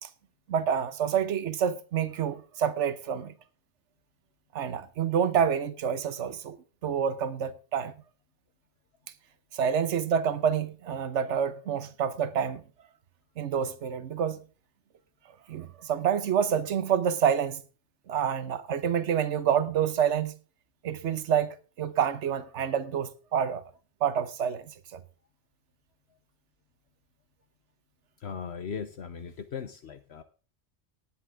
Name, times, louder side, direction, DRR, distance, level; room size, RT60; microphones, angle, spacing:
voice 1, 0.5-3.3 4.5-6.6 6.8-7.9 9.5-12.6 13.4-14.4 15.5-17.6 18.1-20.3 20.8-23.6 24.0-25.0, right 8 dB, 80° right, 1.2 m, -28 dB
voice 2, 28.2-30.2, left 6 dB, 65° left, 1.2 m, -38 dB
19.0 x 7.6 x 3.6 m
omnidirectional pair, 1.2 m